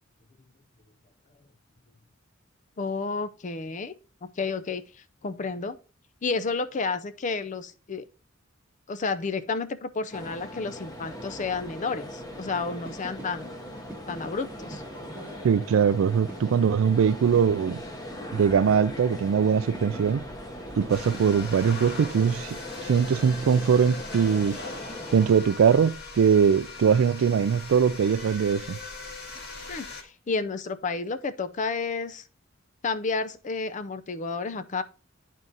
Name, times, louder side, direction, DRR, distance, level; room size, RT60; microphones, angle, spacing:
voice 1, 2.8-3.9 4.2-4.8 5.2-5.8 6.2-8.1 8.9-13.5 14.1-14.8 29.7-32.2 32.8-34.8, left 4 dB, 40° left, 0.5 m, -31 dB
sound 1, 10.1-25.3, equal, 20° left, 0.9 m, -40 dB
sound 2, 10.9-25.3, right 1 dB, 10° right, 1.0 m, -47 dB
voice 2, 15.4-17.8 18.3-20.2 20.8-22.6 22.8-24.6 25.1-28.8, right 7 dB, 75° right, 0.3 m, -22 dB
sound 3, 20.9-30.0, left 3 dB, 55° left, 1.6 m, -40 dB
10.5 x 3.7 x 4.0 m
head